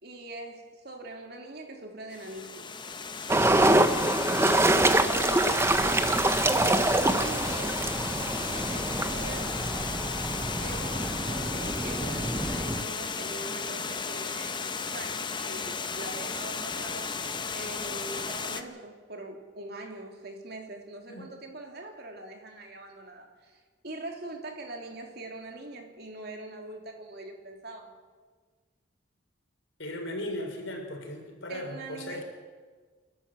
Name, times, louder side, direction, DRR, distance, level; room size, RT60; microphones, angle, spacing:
voice 1, 0.0-2.7 4.9-5.7 6.4-7.8 8.2-9.6 10.5-17.2 17.5-27.9 31.5-32.2, right 2 dB, 55° right, 2 dB, 3.0 m, -42 dB
Water, 2.1-18.6, left 5 dB, 25° left, 0.9 m, -34 dB
sound 1, 3.3-12.8, right 2 dB, 15° right, 0.8 m, -25 dB
voice 2, 29.8-32.2, left 1 dB, 75° left, 2 dB, 3.9 m, -37 dB
29.0 x 11.5 x 7.6 m, 1.5 s
head